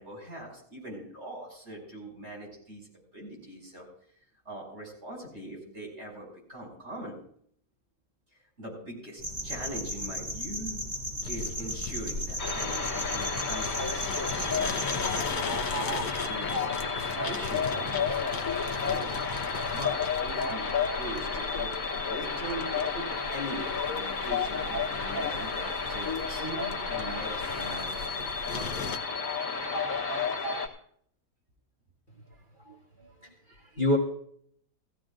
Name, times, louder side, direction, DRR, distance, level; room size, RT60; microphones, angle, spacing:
voice 1, 0.0-2.9 3.1-3.9 4.4-7.2 8.3-10.8 11.3-18.5 18.7-28.8, right 1 dB, 45° right, -2 dB, 6.3 m, -42 dB
sound 1, 9.2-15.2, equal, 90° right, 5.8 m, -36 dB
sound 2, 11.2-29.0, left 5 dB, 75° left, 1.4 m, -39 dB
sound 3, 12.4-30.7, left 5 dB, 60° left, 2.1 m, -31 dB
voice 2, 32.3-34.0, left 1 dB, 30° left, -1 dB, 1.7 m, -31 dB
18.5 x 15.0 x 2.5 m, 0.63 s
omnidirectional pair, 1.7 m